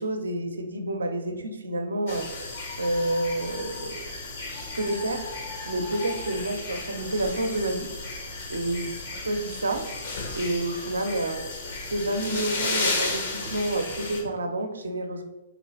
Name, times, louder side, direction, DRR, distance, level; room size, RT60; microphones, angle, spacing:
voice 1, 0.0-2.3 2.8-4.0 4.5-5.3 5.7-7.9 8.5-8.9 9.3-9.9 10.3-11.5 11.9-15.2, right 1 dB, 80° right, 6 dB, 0.5 m, -29 dB
sound 1, 2.1-14.2, left 3 dB, 60° left, 0.9 m, -34 dB
4.1 x 3.0 x 2.8 m, 1.1 s
figure-of-eight pair, 120°, 0 cm